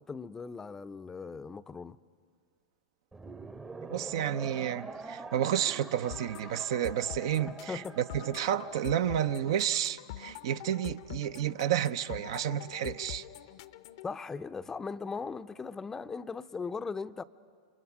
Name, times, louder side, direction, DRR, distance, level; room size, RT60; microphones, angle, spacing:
voice 1, 0.0-2.0 7.7-7.9 14.0-17.2, left 5 dB, 15° left, 0.6 m, -38 dB
sound 1, 3.1-9.6, right 3 dB, 15° right, 0.8 m, -45 dB
voice 2, 3.9-13.2, right 10 dB, 65° right, 0.7 m, -31 dB
sound 2, 6.1-14.1, left 12 dB, 60° left, 0.8 m, -45 dB
29.0 x 27.0 x 6.0 m
hypercardioid pair, 100°, 3 cm